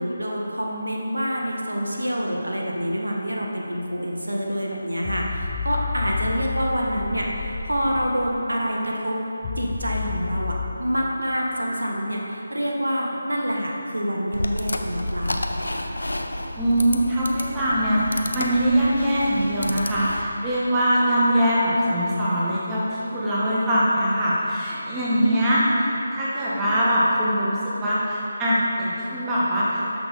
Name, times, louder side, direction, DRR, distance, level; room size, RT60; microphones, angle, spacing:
voice 1, 0.0-9.2 9.6-15.4, equal, 75° right, -1 dB, 1.4 m, -27 dB
sound 1, 5.0-8.3 9.4-10.7, left 5 dB, 25° left, 0.5 m, -30 dB
sound 2, 14.3-20.2, left 1 dB, 70° left, 0.7 m, -30 dB
voice 2, 16.6-30.0, equal, 10° right, -9 dB, 1.5 m, -22 dB
12.5 x 6.2 x 4.0 m, 2.9 s
figure-of-eight pair, 155°, 0 cm